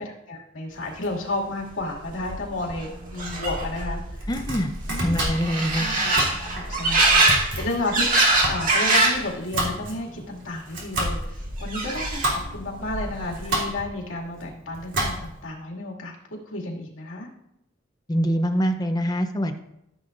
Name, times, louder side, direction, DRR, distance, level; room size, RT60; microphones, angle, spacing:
voice 1, 0.0-4.3 4.9-5.1 5.8-6.2 6.5-8.1 8.4-16.2 16.5-17.3, left 2 dB, 80° left, -1 dB, 2.3 m, -32 dB
sound 1, 1.7-1.8 2.0-9.3 9.6-10.2 11.1-12.5 12.8-13.4, right 2 dB, 45° right, 1.9 m, -24 dB
Domestic sounds home sounds, 4.1-15.5, right 1 dB, 65° right, 3.2 m, -31 dB
voice 2, 4.3-4.7 5.0-5.9 18.1-19.6, equal, 20° left, 7 dB, 0.7 m, -24 dB
14.5 x 7.6 x 2.5 m, 0.83 s
head